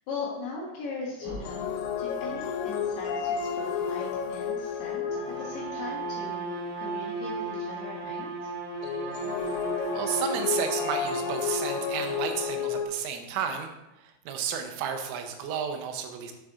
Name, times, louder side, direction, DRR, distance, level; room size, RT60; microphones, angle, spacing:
voice 1, 0.1-1.7 2.0-5.0 5.4-8.5, left 3 dB, 75° left, -4 dB, 2.5 m, -39 dB
sound 1, 1.2-6.3 8.8-12.9, left 7 dB, 90° left, 3.2 m, -32 dB
sound 2, 1.2-6.0, equal, 55° right, 2.7 m, -50 dB
Bowed string instrument, 5.0-12.6, right 3 dB, 70° right, 2.8 m, -35 dB
voice 2, 9.9-13.7 14.3-16.3, right 7 dB, 85° right, 5 dB, 3.3 m, -32 dB
7.8 x 6.1 x 2.4 m, 0.97 s
omnidirectional pair, 5.7 m